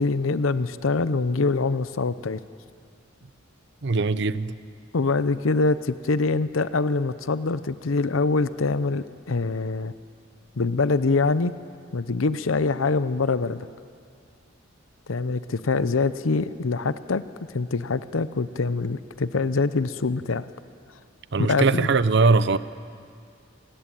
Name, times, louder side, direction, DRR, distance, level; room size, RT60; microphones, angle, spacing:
voice 1, 0.0-2.4 4.9-9.9 10.6-11.5 11.9-13.7 15.1-17.2 17.5-20.5 21.4-21.9, left 3 dB, 85° left, 14 dB, 0.7 m, -24 dB
voice 2, 3.8-4.5 21.3-22.6, right 3 dB, 60° right, 16 dB, 0.7 m, -21 dB
26.5 x 19.0 x 9.0 m, 2.4 s
head